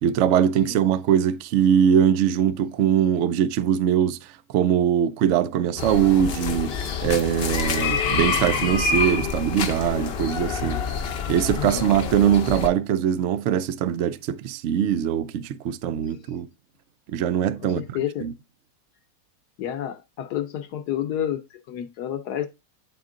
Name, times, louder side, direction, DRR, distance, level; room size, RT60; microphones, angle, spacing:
voice 1, 0.0-4.2 4.5-6.8 7.0-10.8 11.3-16.5 17.1-17.8 18.2-18.3, right 9 dB, 80° right, 0.6 m, -22 dB
sound 1, 5.8-12.7, left 6 dB, 50° left, 0.7 m, -27 dB
voice 2, 11.5-11.9 16.1-16.2 17.6-18.3 19.6-22.5, left 10 dB, 70° left, 1.2 m, -30 dB
8.3 x 4.4 x 3.7 m
omnidirectional pair, 1.8 m